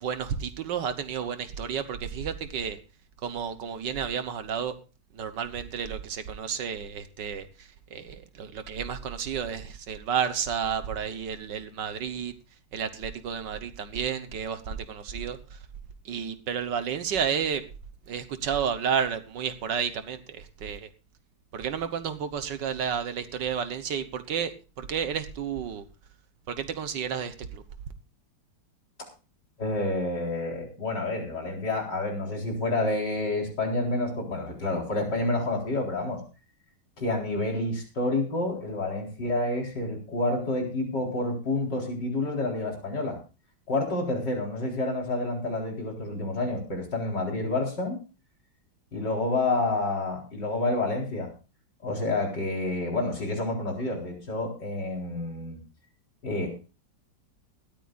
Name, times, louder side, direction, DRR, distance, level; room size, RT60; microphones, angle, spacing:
voice 1, 0.0-2.8 3.2-4.7 5.1-12.3 12.7-15.6 16.1-17.6 18.1-20.9 21.5-24.5 24.8-25.9 26.5-27.6, right 7 dB, 70° right, 10 dB, 1.7 m, -31 dB
voice 2, 29.6-36.2 37.0-43.2 43.7-48.0 48.9-51.3 51.8-55.6 56.2-56.5, left 2 dB, 65° left, 0 dB, 4.7 m, -29 dB
19.0 x 13.5 x 2.5 m, 0.32 s
omnidirectional pair, 2.0 m